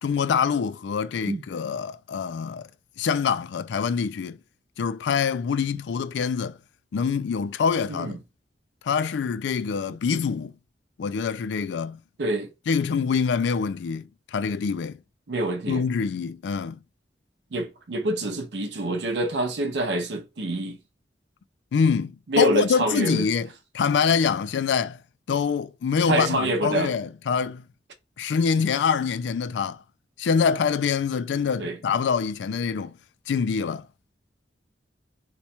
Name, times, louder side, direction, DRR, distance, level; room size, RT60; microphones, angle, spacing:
voice 1, 0.0-2.7 3.0-4.4 4.8-6.6 6.9-8.2 8.8-10.5 11.0-12.0 12.7-15.0 15.7-16.8 21.7-23.5 23.7-25.0 25.3-27.6 28.2-29.8 30.2-32.9 33.3-33.9, left 6 dB, 85° left, 0.4 m, -25 dB
voice 2, 12.2-12.5 15.3-15.8 17.5-20.8 22.3-23.3 26.1-26.9 31.6-31.8, right 1 dB, 75° right, 0.6 m, -26 dB
3.0 x 2.2 x 4.2 m
head